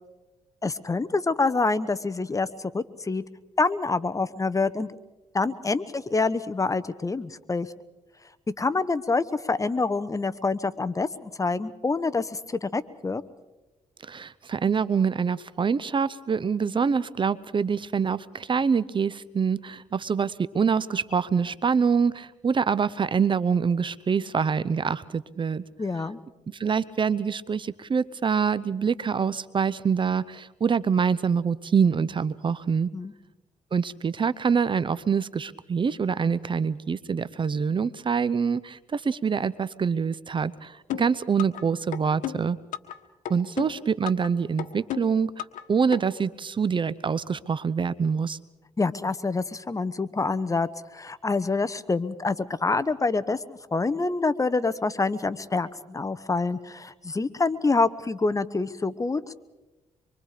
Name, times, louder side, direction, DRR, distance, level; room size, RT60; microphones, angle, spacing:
voice 1, 0.6-2.5 2.7-3.2 3.6-4.9 5.3-7.7 8.6-13.2 25.8-26.2 32.9-33.1 48.8-59.4, left 3 dB, 25° left, 15 dB, 1.0 m, -26 dB
voice 2, 14.0-25.6 26.5-32.9 33.7-42.6 43.3-48.4, right 6 dB, 40° right, 17 dB, 0.7 m, -25 dB
sound 1, 40.9-41.6 41.9-43.0 43.2-44.3 44.6-45.6 45.9-46.0, left 12 dB, 85° left, 1.3 m, -33 dB
25.5 x 23.5 x 5.0 m, 1.1 s
cardioid pair, 75°, 13 cm